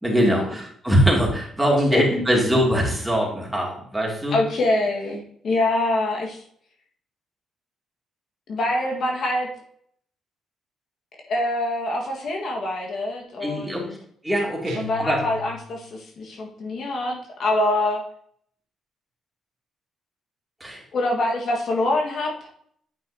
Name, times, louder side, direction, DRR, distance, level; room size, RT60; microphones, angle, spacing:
voice 1, 0.0-4.4 13.4-13.8 14.2-15.2 20.6-20.8, equal, 5° right, -2 dB, 2.7 m, -22 dB
voice 2, 4.3-6.4 8.5-9.5 11.3-14.0 14.8-18.0 20.9-22.5, left 2 dB, 60° left, 0 dB, 1.7 m, -25 dB
sound 1, 14.7-16.0, left 1 dB, 80° right, 1.4 m, -38 dB
9.1 x 5.6 x 2.9 m, 0.64 s
cardioid pair, 90°, 0 cm